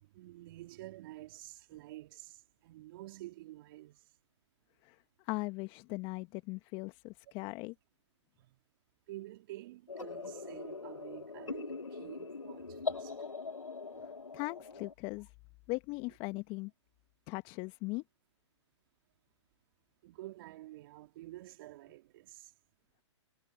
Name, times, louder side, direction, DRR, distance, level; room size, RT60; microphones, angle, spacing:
voice 1, 0.1-4.0 8.4-8.6 9.1-13.2 13.9-14.1 20.0-22.5, right 16 dB, 45° right, 3.6 m, -49 dB
voice 2, 5.2-7.7 14.3-15.3 15.7-16.7 17.3-18.0, left 25 dB, 30° left, 1.4 m, -39 dB
sound 1, 9.9-14.9, left 4 dB, 90° left, 2.5 m, -42 dB
figure-of-eight pair, 120°, 16 cm